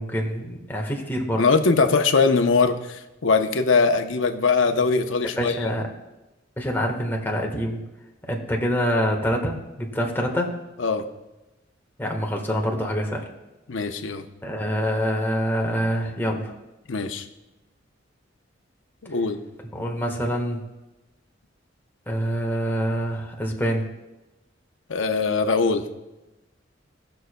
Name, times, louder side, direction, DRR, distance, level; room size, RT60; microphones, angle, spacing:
voice 1, 0.0-1.4 5.4-5.8 6.6-7.8 8.2-10.6 12.0-13.2 14.4-16.5 19.7-20.6 22.1-23.8, equal, 10° left, 0 dB, 1.3 m, -26 dB
voice 2, 1.4-5.7 10.8-11.0 13.7-14.2 16.9-17.2 19.0-19.4 24.9-25.8, left 4 dB, 75° left, 6 dB, 0.8 m, -21 dB
18.0 x 6.5 x 2.2 m, 1.0 s
head